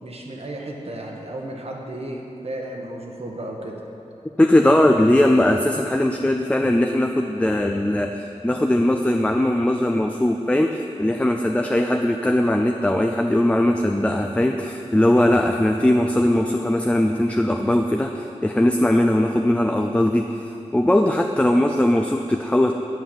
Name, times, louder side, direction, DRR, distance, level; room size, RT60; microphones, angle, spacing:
voice 1, 0.0-3.8, right 1 dB, 55° right, 0 dB, 1.3 m, -33 dB
voice 2, 4.4-22.7, left 1 dB, 10° left, 3 dB, 0.4 m, -20 dB
9.4 x 5.7 x 7.1 m, 2.9 s
wide cardioid pair, 65°, 12 cm